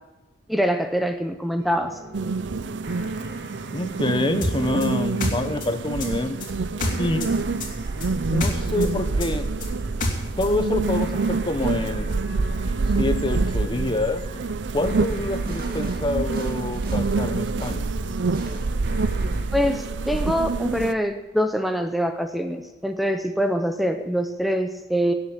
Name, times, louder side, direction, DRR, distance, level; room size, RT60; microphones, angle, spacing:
voice 1, 0.5-2.0 19.5-25.1, equal, ahead, 6 dB, 0.7 m, -24 dB
sound 1, 1.6-19.4, right 1 dB, 55° right, 2.3 m, -39 dB
sound 2, 2.1-20.9, right 3 dB, 85° right, 0.6 m, -27 dB
voice 2, 3.7-6.4 7.0-7.3 8.3-9.5 10.4-12.1 13.0-14.2 14.7-17.9, left 2 dB, 25° left, 10 dB, 0.9 m, -26 dB
sound 3, 4.4-7.3 7.6-10.5, left 1 dB, 50° left, 2.7 m, -27 dB
17.5 x 7.4 x 8.7 m, 1.1 s
head